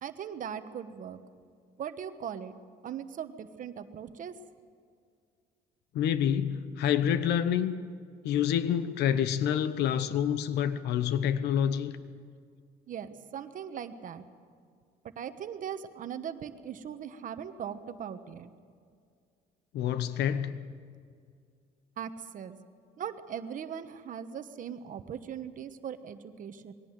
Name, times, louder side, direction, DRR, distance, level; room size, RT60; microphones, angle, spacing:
voice 1, 0.0-1.2 1.8-2.5 2.8-4.4 12.9-14.2 15.2-18.5 22.0-22.6 23.0-26.7, right 8 dB, 50° right, 10 dB, 1.2 m, -39 dB
voice 2, 5.9-7.7 8.2-11.9 19.7-20.6, left 9 dB, 80° left, 13 dB, 1.0 m, -27 dB
21.5 x 17.5 x 7.6 m, 2.2 s
cardioid pair, 110°, 17 cm